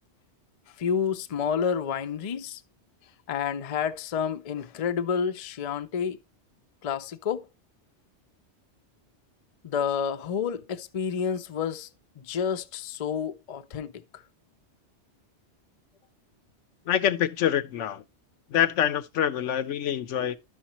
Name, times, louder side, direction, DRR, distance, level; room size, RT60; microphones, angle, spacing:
voice 1, 0.8-2.6 3.3-6.2 6.8-7.5 9.6-11.9 12.2-13.9 20.2-20.3, left 7 dB, 45° left, 0.5 m, -29 dB
voice 2, 16.9-18.0 18.5-20.4, left 10 dB, 85° left, 1.0 m, -25 dB
12.0 x 5.8 x 2.9 m
omnidirectional pair, 1.2 m